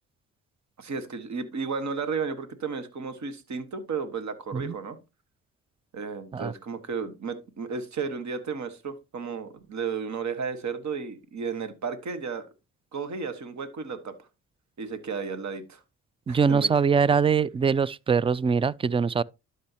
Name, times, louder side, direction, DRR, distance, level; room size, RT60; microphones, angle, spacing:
voice 1, 0.8-5.0 5.9-12.5 12.9-14.3 14.8-15.8 16.3-16.7, right 5 dB, 55° right, 1.5 m, -33 dB
voice 2, 16.3-19.2, right 6 dB, 20° right, 0.3 m, -23 dB
12.0 x 5.5 x 2.9 m
cardioid pair, 70°, 33 cm